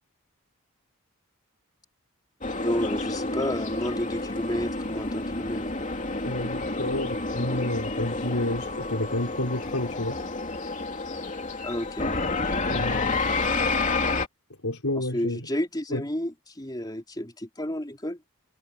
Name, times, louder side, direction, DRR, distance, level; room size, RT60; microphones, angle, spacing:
sound 1, 2.4-14.3, left 3 dB, 35° left, 2.8 m, -29 dB
voice 1, 2.6-5.7 11.6-12.1 15.0-18.2, left 1 dB, 20° left, 3.5 m, -31 dB
voice 2, 6.2-10.2 12.7-13.3 14.6-15.5 15.9-16.0, left 1 dB, 75° left, 4.3 m, -30 dB
head